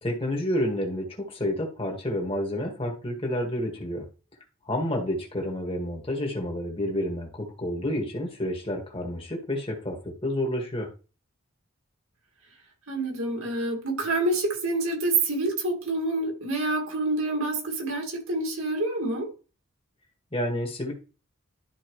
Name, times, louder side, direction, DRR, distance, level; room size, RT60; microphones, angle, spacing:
voice 1, 0.0-4.0 4.7-10.9 20.3-20.9, left 1 dB, 25° left, 1.9 m, -29 dB
voice 2, 12.9-19.3, right 2 dB, 75° right, 2.2 m, -27 dB
12.5 x 4.2 x 3.2 m
head